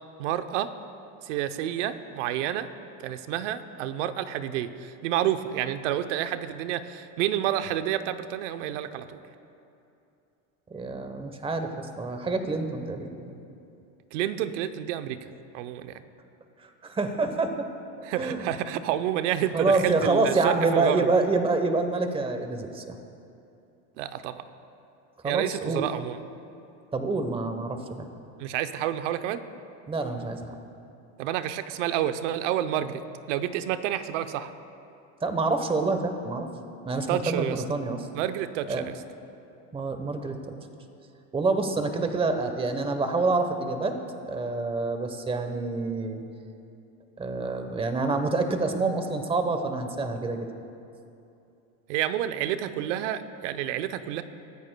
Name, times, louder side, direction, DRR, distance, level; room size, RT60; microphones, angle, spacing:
voice 1, 0.2-0.7 1.2-2.7 3.0-9.2 14.1-15.2 15.5-16.0 18.0-21.1 24.0-24.4 25.2-26.2 28.4-29.4 31.2-33.0 33.3-34.5 37.1-37.6 38.1-38.9 51.9-54.2, right 11 dB, 85° right, 10 dB, 0.8 m, -29 dB
voice 2, 10.7-13.4 16.6-17.7 18.2-18.5 19.5-23.0 25.2-25.8 26.9-28.1 29.9-30.5 35.2-36.5 36.8-38.0 38.7-38.9 39.7-40.3 41.3-43.9 44.3-46.2 47.2-50.5, right 3 dB, 15° right, 7 dB, 1.0 m, -27 dB
22.5 x 13.5 x 2.2 m, 2.7 s
supercardioid pair, 125°, 36 cm